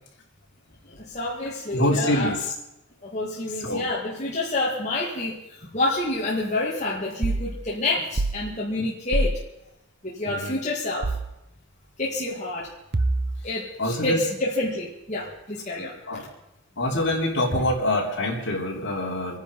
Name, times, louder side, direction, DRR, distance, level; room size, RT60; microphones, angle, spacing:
voice 1, 0.8-2.4 3.0-9.4 10.0-11.2 12.0-12.7 13.4-16.3, left 2 dB, 35° left, -5 dB, 2.3 m, -28 dB
voice 2, 1.7-2.5 3.6-3.9 10.2-10.6 13.8-14.2 16.1-16.2 16.8-19.4, left 1 dB, 55° left, -1 dB, 3.5 m, -25 dB
sound 1, 7.2-7.5 8.2-8.4 9.1-9.4 11.0-11.3 12.9-13.5, right 2 dB, 50° right, 0.7 m, -24 dB
26.0 x 10.5 x 5.4 m, 0.90 s
head